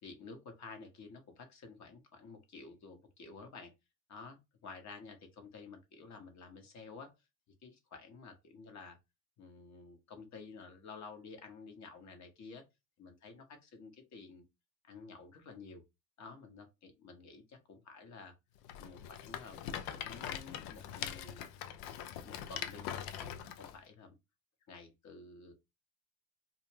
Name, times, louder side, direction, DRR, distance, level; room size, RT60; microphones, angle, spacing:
voice 1, 0.0-3.7 4.1-7.1 7.6-9.0 9.4-12.6 13.0-14.4 14.8-15.8 16.2-18.3 18.8-21.4 22.2-22.9 23.2-24.1 24.7-25.5, left 4 dB, 40° left, 1.0 m, -51 dB
Rattle, 18.6-23.7, left 10 dB, 60° left, 0.6 m, -42 dB
2.4 x 2.1 x 3.2 m
hypercardioid pair, 75°, 43 cm